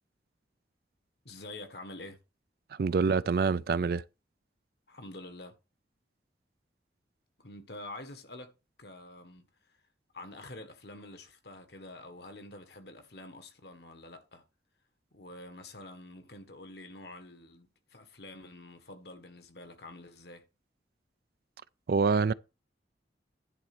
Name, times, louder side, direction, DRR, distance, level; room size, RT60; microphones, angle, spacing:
voice 1, 1.2-2.2 4.9-5.5 7.4-8.5 8.8-9.8 10.1-14.4 15.1-20.4, left 2 dB, 65° left, 1.7 m, -47 dB
voice 2, 2.8-4.0 21.9-22.3, right 5 dB, 55° right, 0.4 m, -26 dB
10.5 x 4.2 x 6.1 m
head